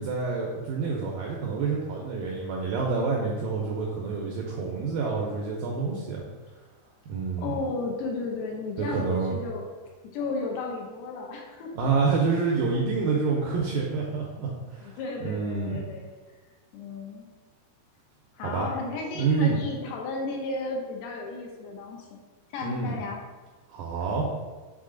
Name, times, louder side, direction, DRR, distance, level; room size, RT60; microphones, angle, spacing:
voice 1, 0.0-6.2 7.1-7.5 8.8-9.4 11.8-15.8 18.4-18.7 19.2-19.6 22.6-23.0 23.7-24.3, right 4 dB, 80° right, -2 dB, 2.0 m, -28 dB
voice 2, 7.4-9.6 10.1-11.7 14.8-16.1 16.7-17.3 18.4-22.2 22.5-23.2, left 3 dB, 80° left, 0 dB, 3.0 m, -34 dB
6.7 x 3.9 x 3.7 m, 1.3 s
omnidirectional pair, 4.8 m